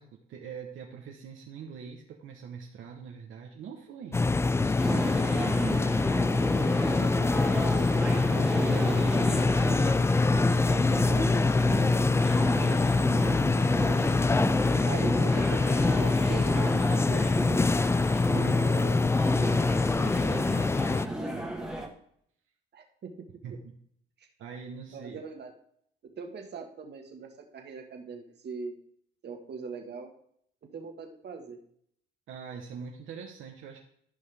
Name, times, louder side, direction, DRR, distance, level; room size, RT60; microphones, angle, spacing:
voice 1, 0.0-6.0 8.3-10.0 10.7-12.7 12.9-13.9 17.0-17.1 18.3-19.1 20.0-21.5 23.4-23.8 24.4-25.2 32.3-33.8, right 6 dB, 80° right, 1 dB, 1.1 m, -43 dB
sound 1, 4.1-21.1, left 3 dB, 15° left, 0.3 m, -25 dB
sound 2, 4.8-21.9, right 1 dB, 5° right, 1.5 m, -34 dB
voice 2, 14.8-17.3 22.7-23.1 24.2-24.3 24.9-25.5 26.2-28.8 29.2-30.1 30.7-31.6, right 5 dB, 55° right, 4 dB, 1.6 m, -41 dB
15.0 x 5.4 x 3.5 m, 0.67 s
cardioid pair, 90°, 20 cm